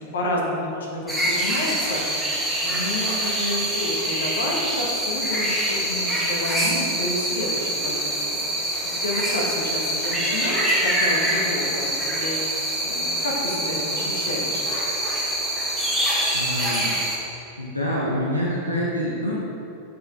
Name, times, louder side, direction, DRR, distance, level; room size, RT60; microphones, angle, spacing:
voice 1, 0.0-2.0 2.6-8.4 8.9-14.6, left 1 dB, 65° left, -2 dB, 1.4 m, -30 dB
sound 1, 1.1-17.2, right 1 dB, ahead, 1.6 m, -25 dB
voice 2, 16.3-17.0 17.6-19.3, equal, 90° left, -6 dB, 1.0 m, -26 dB
7.9 x 5.0 x 4.7 m, 2.8 s
figure-of-eight pair, 90°, 0 cm